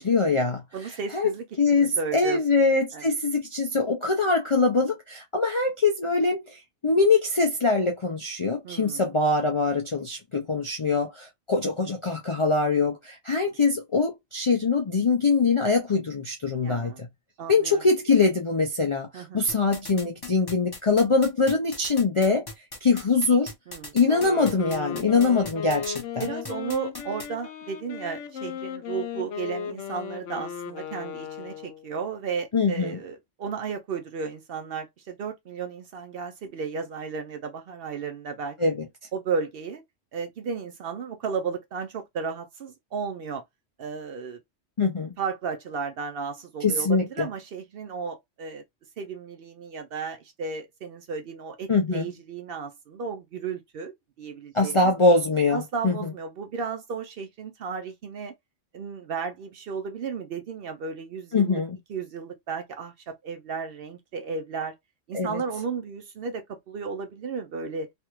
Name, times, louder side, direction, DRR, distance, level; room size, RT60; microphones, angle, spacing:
voice 1, 0.0-0.6 1.1-1.3 1.6-17.1 17.5-22.4 22.8-23.5 23.9-26.2 32.5-32.9 38.6-38.8 44.8-45.1 46.6-47.3 51.7-52.1 54.5-56.1 61.3-61.8 65.1-65.4, left 3 dB, 45° left, 0.4 m, -23 dB
voice 2, 0.7-2.4 2.9-3.1 8.6-9.0 16.6-17.0 17.4-17.8 19.1-19.5 23.7-24.0 26.2-38.6 39.1-39.8 40.1-43.4 43.8-44.4 45.2-48.6 49.0-54.9 55.5-58.3 58.7-61.6 61.9-64.8 65.1-67.9, right 5 dB, 60° right, 0.6 m, -34 dB
sound 1, 19.5-27.3, left 3 dB, 20° left, 0.7 m, -38 dB
Wind instrument woodwind instrument, 24.0-31.9, left 8 dB, 80° left, 0.9 m, -36 dB
3.3 x 2.3 x 2.9 m
omnidirectional pair, 1.3 m